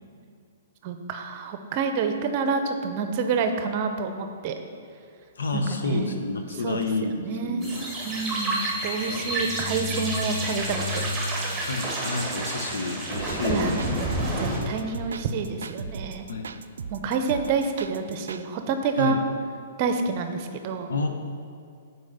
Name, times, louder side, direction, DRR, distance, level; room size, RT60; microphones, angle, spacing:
voice 1, 0.8-4.5 5.5-6.2 6.6-6.8 7.2-7.7 8.0-11.1 13.5-13.7 14.4-16.3 16.9-19.2 19.8-20.9, right 5 dB, 40° right, 7 dB, 0.7 m, -28 dB
voice 2, 5.4-7.1 7.4-7.9 9.1-9.2 11.6-13.8 14.4-14.7 16.3-16.6 19.0-19.2 20.9-21.1, left 3 dB, 80° left, 4 dB, 1.0 m, -29 dB
sound 1, 7.1-15.5 16.0-16.1 16.4-16.5 16.8-17.0, left 2 dB, 20° left, 0.5 m, -39 dB
sound 2, 7.6-14.6, right 2 dB, 10° right, 1.8 m, -30 dB
sound 3, 13.1-18.4, right 5 dB, 85° right, 0.3 m, -38 dB
6.3 x 4.8 x 6.7 m, 2.4 s
hypercardioid pair, 140°, 0 cm